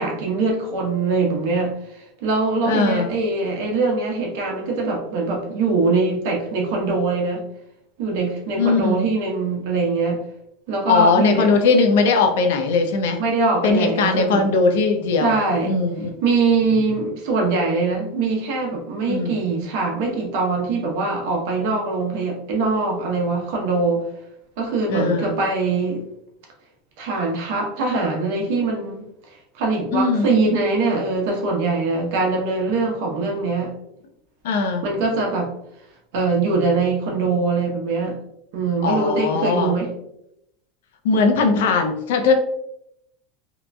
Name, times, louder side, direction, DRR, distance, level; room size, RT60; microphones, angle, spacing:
voice 1, 0.0-1.8 2.2-7.4 8.0-10.2 10.7-11.6 13.2-14.5 15.2-15.8 16.2-24.0 24.6-26.0 27.0-29.0 29.6-33.7 34.8-35.5 36.1-38.2 38.5-39.9, right 3 dB, 65° right, 0 dB, 0.8 m, -22 dB
voice 2, 2.7-3.1 8.6-9.1 10.9-13.2 13.6-15.4 15.6-16.1 19.1-19.4 24.9-25.4 29.9-30.3 34.4-34.8 38.8-39.7 41.0-42.3, left 4 dB, 80° left, 4 dB, 0.5 m, -19 dB
2.8 x 2.5 x 2.2 m, 0.78 s
supercardioid pair, 160°, 0 cm